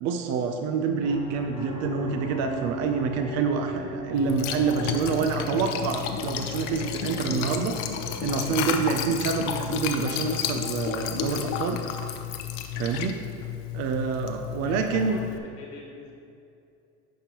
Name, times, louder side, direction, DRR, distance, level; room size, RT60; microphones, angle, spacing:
voice 1, 0.0-7.8 8.2-11.8 12.8-13.2 13.7-15.2, right 5 dB, 45° right, 5 dB, 0.5 m, -27 dB
sound 1, 1.0-8.7, left 2 dB, 15° left, 0.9 m, -41 dB
sound 2, 1.5-9.0, right 2 dB, 10° right, 1.4 m, -41 dB
Liquid, 4.1-15.4, left 9 dB, 70° left, 0.7 m, -32 dB
voice 2, 14.6-16.1, left 2 dB, 85° left, -1 dB, 1.7 m, -42 dB
10.0 x 5.4 x 2.9 m, 2.5 s
supercardioid pair, 135°, 35 cm